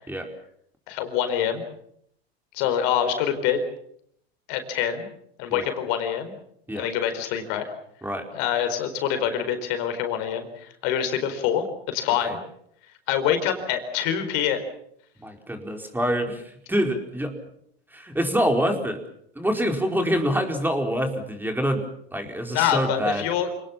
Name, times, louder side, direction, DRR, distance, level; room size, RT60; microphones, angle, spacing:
voice 1, 0.9-1.6 2.5-3.6 4.5-5.1 5.4-6.3 6.8-7.7 8.3-12.4 13.1-14.6 22.5-23.5, left 9 dB, 60° left, 8 dB, 4.5 m, -25 dB
voice 2, 15.2-17.3 17.9-19.0 19.3-23.3, equal, 5° right, 4 dB, 4.6 m, -26 dB
28.0 x 19.5 x 7.3 m, 0.69 s
hypercardioid pair, 95°, 31 cm